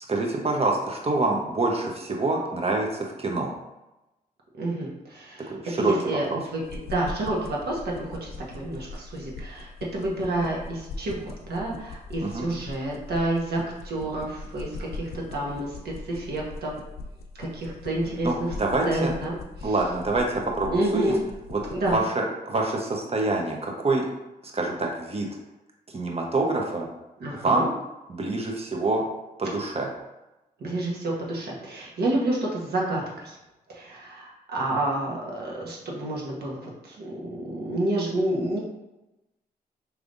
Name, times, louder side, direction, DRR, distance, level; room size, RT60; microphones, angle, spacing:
voice 1, 0.1-3.5 5.5-6.4 12.2-12.4 18.2-19.1 19.6-21.1 21.5-21.6 21.9-24.1 24.4-25.3 25.9-26.9 27.4-27.7 28.1-29.0 29.4-29.9, right 2 dB, 35° right, 0 dB, 1.1 m, -26 dB
voice 2, 4.5-15.8 16.0-16.7 17.4-18.5 18.8-19.7 20.7-21.2 21.7-22.0 27.2-27.7 30.6-33.4 33.7-38.6, right 1 dB, 75° right, -3 dB, 1.3 m, -29 dB
sound 1, 6.6-22.0, left 3 dB, 70° left, 0.5 m, -41 dB
4.7 x 3.3 x 2.7 m, 0.98 s
cardioid pair, 55°, 17 cm